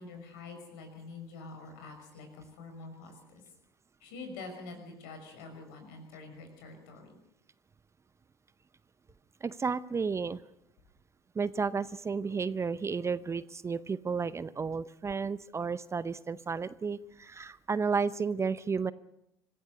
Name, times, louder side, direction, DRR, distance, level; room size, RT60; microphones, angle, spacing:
voice 1, 0.0-3.1 4.0-7.2, left 3 dB, 65° left, 5 dB, 5.9 m, -46 dB
voice 2, 9.4-10.4 11.3-18.9, right 5 dB, 25° right, 17 dB, 0.7 m, -32 dB
25.5 x 15.5 x 6.8 m, 0.82 s
figure-of-eight pair, 65°, 12 cm